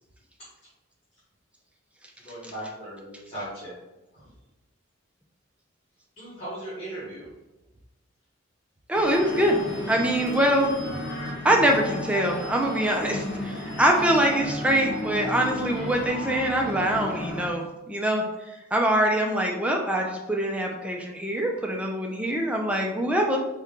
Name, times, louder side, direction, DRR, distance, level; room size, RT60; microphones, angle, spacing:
voice 1, 2.2-3.7 4.1-4.2 6.2-7.3, right 1 dB, 30° left, -9 dB, 1.4 m, -37 dB
sound 1, 8.9-17.5, left 1 dB, 60° left, 0.8 m, -34 dB
voice 2, 8.9-9.6 9.9-10.7 11.4-23.4, right 1 dB, 5° right, 0 dB, 0.4 m, -24 dB
4.2 x 2.3 x 3.7 m, 1.0 s
head